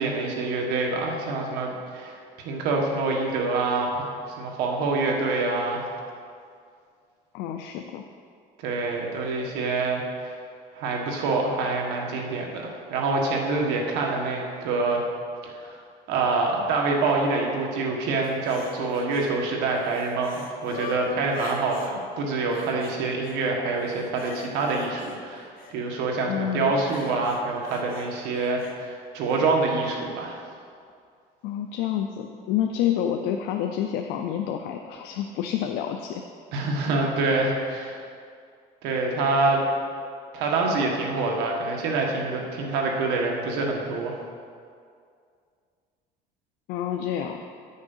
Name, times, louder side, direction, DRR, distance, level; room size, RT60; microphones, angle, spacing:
voice 1, 0.0-4.1 4.4-5.9 8.6-10.0 10.7-15.0 15.4-15.8 16.1-30.4 36.5-38.0 38.8-39.6 40.3-44.1, right 3 dB, 85° right, 0 dB, 1.6 m, -26 dB
voice 2, 7.3-8.1 26.3-26.7 31.4-36.2 46.7-47.4, left 10 dB, 85° left, 4 dB, 0.6 m, -28 dB
sound 1, 18.2-19.3 19.7-21.9 22.5-23.4 23.7-25.8 26.7-28.8 29.3-29.4, left 5 dB, 60° left, 0.9 m, -43 dB
9.7 x 6.4 x 5.6 m, 2.3 s
cardioid pair, 135°, 17 cm